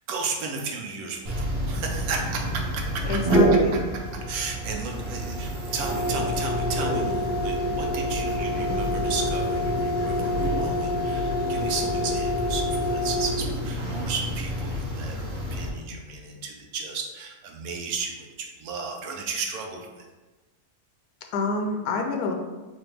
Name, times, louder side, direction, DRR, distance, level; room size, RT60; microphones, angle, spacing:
voice 1, 0.1-1.3 1.7-3.8 4.3-20.1, right 4 dB, 75° right, 1 dB, 1.1 m, -34 dB
sound 1, 1.3-15.7, equal, 55° right, 1.1 m, -26 dB
voice 2, 3.0-3.8 21.3-22.3, left 3 dB, 80° left, 2 dB, 1.1 m, -27 dB
4.2 x 2.5 x 3.2 m, 1.2 s
omnidirectional pair, 1.7 m